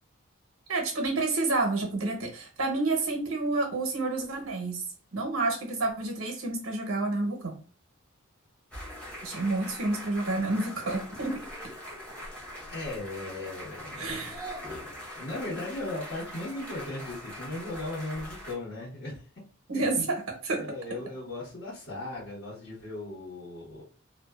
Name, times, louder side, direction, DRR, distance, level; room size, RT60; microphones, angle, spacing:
voice 1, 0.7-4.8 5.1-7.6 9.2-11.4 14.0-14.5 19.7-20.6, right 2 dB, 85° right, 2 dB, 0.8 m, -29 dB
sound 1, 8.7-18.5, equal, 5° left, 0.8 m, -42 dB
voice 2, 12.7-14.3 14.6-14.8 15.1-19.3 19.7-19.8 20.6-23.8, left 2 dB, 55° left, -9 dB, 1.2 m, -37 dB
2.5 x 2.2 x 2.3 m, 0.39 s
head